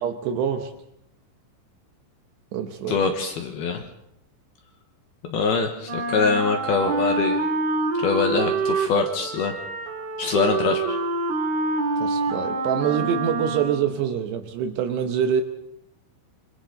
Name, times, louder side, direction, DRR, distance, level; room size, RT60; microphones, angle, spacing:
voice 1, 0.0-0.7 2.5-3.0 12.0-15.4, right 8 dB, 70° right, 6 dB, 2.8 m, -25 dB
voice 2, 2.9-3.8 5.2-7.4 8.0-9.5 10.2-11.0, left 5 dB, 70° left, 4 dB, 2.6 m, -23 dB
Wind instrument woodwind instrument, 5.8-14.0, right 3 dB, 55° right, 4.5 m, -26 dB
26.0 x 25.5 x 4.0 m, 0.80 s
omnidirectional pair, 5.7 m